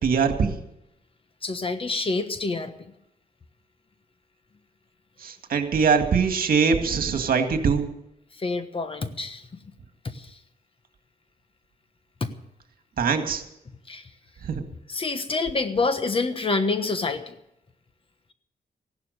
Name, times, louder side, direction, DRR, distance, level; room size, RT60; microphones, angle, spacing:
voice 1, 0.0-0.5 5.2-7.8 13.0-13.4 14.4-14.6, right 5 dB, 65° right, 6 dB, 1.9 m, -22 dB
voice 2, 1.4-2.9 8.4-9.4 10.0-10.3 12.2-12.3 13.9-14.0 14.9-17.3, left 3 dB, 35° left, 9 dB, 1.3 m, -27 dB
16.0 x 12.0 x 6.6 m, 0.85 s
wide cardioid pair, 115°, 16 cm